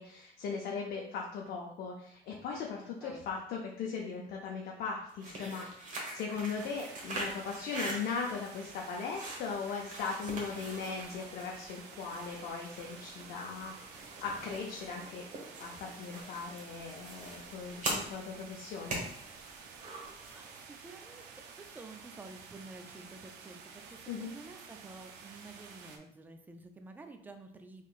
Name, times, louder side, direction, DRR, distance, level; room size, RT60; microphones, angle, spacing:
voice 1, 0.0-15.2 15.6-19.0 24.1-24.3, left 5 dB, 65° left, -1 dB, 0.6 m, -39 dB
voice 2, 2.8-3.2 20.3-27.8, right 3 dB, 10° right, 6 dB, 0.4 m, -51 dB
sound 1, 5.1-20.7, right 2 dB, 50° right, 1.1 m, -43 dB
sound 2, 6.5-26.0, right 5 dB, 85° right, 0.5 m, -51 dB
3.7 x 3.2 x 2.4 m, 0.68 s
cardioid pair, 110°, 17 cm